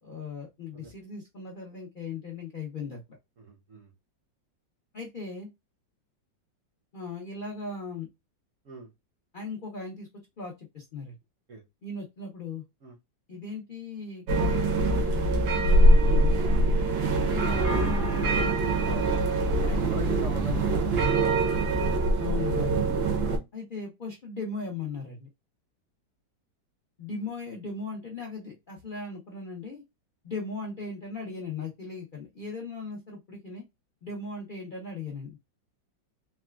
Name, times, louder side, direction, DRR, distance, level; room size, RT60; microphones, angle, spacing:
voice 1, 0.0-3.2 4.9-5.5 6.9-8.1 9.3-10.1 10.4-11.1 11.8-12.6 13.3-14.5 14.8-16.4 17.2-18.8 19.6-20.2 22.2-22.8 23.5-25.3 27.0-29.8 30.2-33.6 34.0-35.4, left 3 dB, 75° left, 0 dB, 0.4 m, -38 dB
voice 2, 3.4-3.9 8.6-8.9 11.5-11.6 12.8-13.0 16.5-16.9 18.9-19.1 19.9-21.8, right 3 dB, 60° right, 0 dB, 0.8 m, -43 dB
sound 1, 14.3-23.4, right 1 dB, 85° right, 1.4 m, -23 dB
4.0 x 2.2 x 2.2 m, 0.21 s
omnidirectional pair, 2.0 m